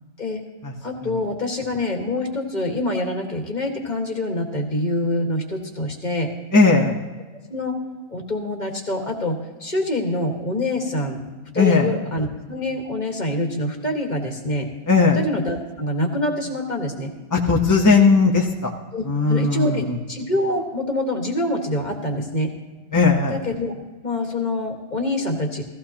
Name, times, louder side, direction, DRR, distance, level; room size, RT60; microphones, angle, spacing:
voice 1, 0.8-6.3 7.5-7.8 8.1-11.2 11.5-14.7 15.1-17.1 18.9-19.0 19.3-22.5 23.3-23.7 24.0-25.6, left 1 dB, 35° left, 2 dB, 1.7 m, -25 dB
voice 2, 6.5-7.0 11.5-11.9 14.9-15.2 17.3-18.7 19.1-20.0 22.9-23.3, left 4 dB, 15° left, -1 dB, 0.8 m, -17 dB
16.0 x 15.5 x 2.9 m, 1.3 s
omnidirectional pair, 1.4 m